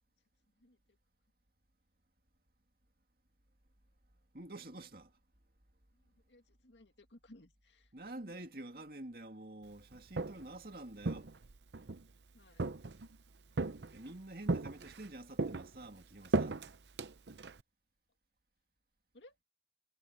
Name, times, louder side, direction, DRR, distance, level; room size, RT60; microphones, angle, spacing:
voice 1, 4.3-5.1 7.9-11.3 13.9-16.6, right 1 dB, 55° right, 2.5 m, -48 dB
voice 2, 6.3-7.8 12.3-12.6 19.1-19.3, left 1 dB, 85° left, 2.2 m, -59 dB
Walk footsteps, 9.9-10.6 11.0-12.0 12.6-13.2 13.6-14.1 14.5-15.1 15.4-17.6, right 3 dB, 80° right, 0.8 m, -36 dB
head